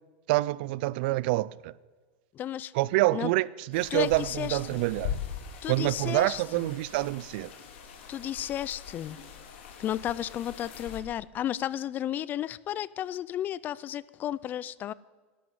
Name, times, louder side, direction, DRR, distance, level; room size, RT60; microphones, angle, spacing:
voice 1, 0.3-1.7 2.7-5.2 5.7-7.5, right 19 dB, 60° right, 0.4 m, -27 dB
voice 2, 2.3-2.7 3.1-3.3 3.9-4.8 5.6-6.7 8.1-9.2 9.8-14.9, left 11 dB, 30° left, 0.4 m, -33 dB
sound 1, 3.7-11.0, left 8 dB, 75° left, 2.9 m, -41 dB
12.5 x 11.5 x 8.0 m
supercardioid pair, 140°, 6 cm